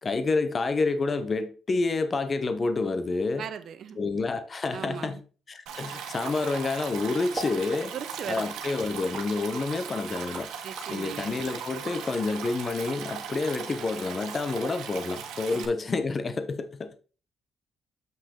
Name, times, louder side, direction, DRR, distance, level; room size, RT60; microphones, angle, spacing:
voice 1, 0.0-3.5 4.0-5.2 5.5-7.9 8.3-10.5 10.9-17.0, left 3 dB, 35° left, 1.0 m, -28 dB
voice 2, 3.4-4.0 4.7-5.2 7.9-8.5 10.6-11.3 15.5-15.6, right 8 dB, 65° right, 0.9 m, -38 dB
Stream, 5.7-15.7, right 7 dB, 90° right, 1.4 m, -38 dB
sound 1, 6.2-6.9 7.3-7.6 8.3-9.3 9.8-10.9, right 2 dB, 30° right, 2.6 m, -39 dB
7.7 x 6.1 x 3.8 m
cardioid pair, 90°, 0 cm